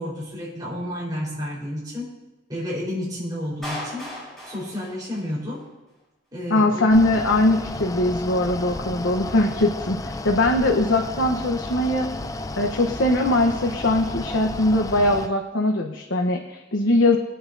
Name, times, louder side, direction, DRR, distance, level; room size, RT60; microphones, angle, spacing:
voice 1, 0.0-2.1 2.5-4.1 4.4-5.6 6.3-7.2, left 1 dB, 20° right, -6 dB, 4.2 m, -31 dB
Clapping, 3.6-5.6, left 1 dB, ahead, 4.6 m, -36 dB
voice 2, 6.5-12.1 12.6-17.2, left 1 dB, 80° left, 2 dB, 1.0 m, -21 dB
Mechanical fan, 6.9-15.3, left 2 dB, 15° left, 0.4 m, -32 dB
22.0 x 8.8 x 2.7 m, 1.1 s
head